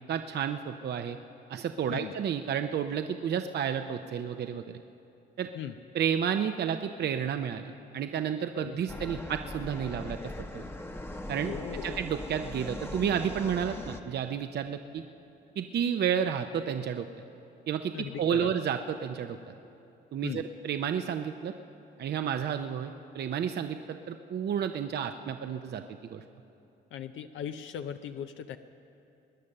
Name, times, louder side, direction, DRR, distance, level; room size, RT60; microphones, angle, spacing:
voice 1, 0.1-1.2 1.5-4.8 5.4-5.5 5.9-7.6 7.9-10.7 11.3-11.5 11.8-15.0 15.6-17.1 17.7-17.9 18.2-19.5 20.1-21.5 22.0-25.8 26.1-26.2, right 8 dB, 55° right, 7 dB, 0.6 m, -31 dB
sound 1, 8.9-14.0, left 1 dB, 10° left, 0.9 m, -40 dB
voice 2, 11.4-12.0 17.9-18.5 20.2-20.4 26.9-28.6, left 9 dB, 75° left, 8 dB, 0.6 m, -38 dB
21.0 x 9.7 x 6.6 m, 2.8 s
cardioid pair, 90°, 20 cm